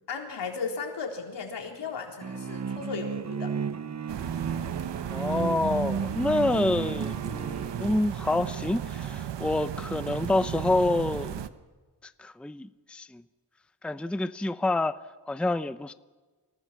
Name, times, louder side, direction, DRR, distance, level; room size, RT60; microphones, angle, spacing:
voice 1, 0.1-3.6, left 5 dB, 85° left, 4.0 m, -35 dB
sound 1, 2.2-8.1, right 6 dB, 40° right, 0.7 m, -33 dB
sound 2, 4.1-11.5, right 9 dB, 85° right, 1.1 m, -35 dB
voice 2, 5.1-11.3 12.2-13.2 13.8-15.0 15.3-15.9, left 2 dB, 5° left, 0.6 m, -27 dB
25.0 x 18.5 x 7.5 m
cardioid pair, 80°, 41 cm